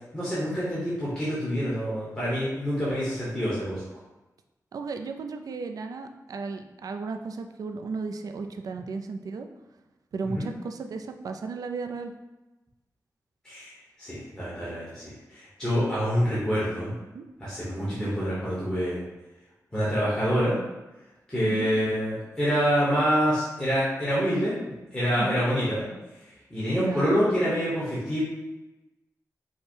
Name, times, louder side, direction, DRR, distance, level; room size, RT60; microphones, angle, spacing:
voice 1, 0.1-3.8 10.3-10.5 13.4-13.7 14.0-16.9 17.4-19.0 19.7-20.5 21.3-24.5 24.9-25.9 26.5-28.2, equal, 15° left, -10 dB, 1.1 m, -26 dB
voice 2, 4.7-9.5 10.1-12.1 17.1-17.3 17.8-18.1 21.4-21.7 25.2-25.4 26.8-27.1, right 4 dB, 70° right, 6 dB, 0.4 m, -35 dB
4.9 x 2.1 x 4.4 m, 1.1 s
wide cardioid pair, 180°, 6 cm